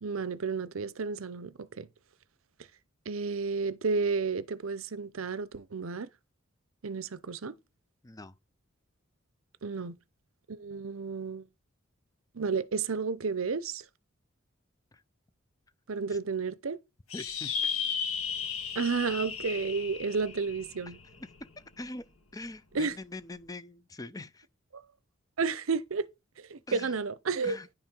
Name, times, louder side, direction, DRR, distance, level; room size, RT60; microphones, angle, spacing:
voice 1, 0.0-1.9 3.1-6.1 6.8-7.5 9.6-10.0 10.5-11.5 12.3-13.8 15.9-16.8 18.8-21.0 22.7-22.9 24.7-24.8 25.4-26.1 26.4-27.6, right 4 dB, 70° right, 0.7 m, -32 dB
voice 2, 8.0-8.3 14.9-15.0 16.1-16.2 17.1-17.7 21.2-21.3 21.6-24.5 26.7-26.9 27.4-27.7, left 2 dB, 15° left, 0.5 m, -43 dB
sound 1, 17.1-21.8, left 7 dB, 80° left, 1.6 m, -35 dB
10.0 x 5.6 x 4.5 m
head